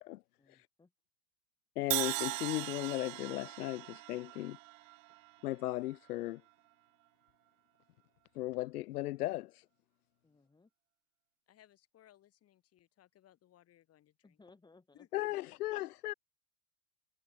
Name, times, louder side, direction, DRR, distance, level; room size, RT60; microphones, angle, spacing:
voice 1, 0.4-0.9 10.2-10.7 14.2-15.1, left 3 dB, 10° left, 4.3 m, -63 dB
voice 2, 1.8-4.6 5.4-6.4 8.4-9.6 15.1-16.1, left 17 dB, 85° left, 0.6 m, -36 dB
Crash cymbal, 1.9-5.9, right 22 dB, 60° right, 0.8 m, -39 dB
voice 3, 11.5-14.4 14.9-15.5, left 12 dB, 35° left, 6.1 m, -63 dB
hypercardioid pair, 120°, 44 cm